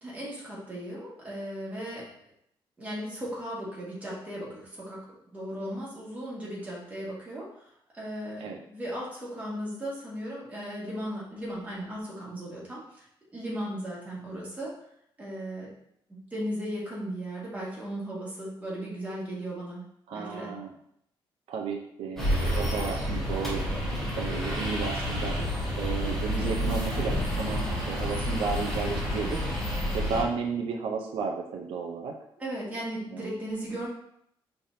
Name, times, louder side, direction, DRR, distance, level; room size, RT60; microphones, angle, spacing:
voice 1, 0.0-2.1 2.8-5.0 5.3-7.5 7.9-13.0 13.3-14.7 15.2-15.7 16.1-19.8 20.1-20.5 32.4-33.9, equal, 15° right, -7 dB, 1.8 m, -36 dB
voice 2, 20.1-20.7 21.5-23.6 24.2-25.4 25.8-29.4 29.9-32.1 33.1-33.3, right 5 dB, 90° right, 2 dB, 0.6 m, -33 dB
sound 1, 22.2-30.2, equal, 5° left, 1.4 m, -29 dB
5.7 x 3.4 x 2.7 m, 0.73 s
cardioid pair, 145°, 9 cm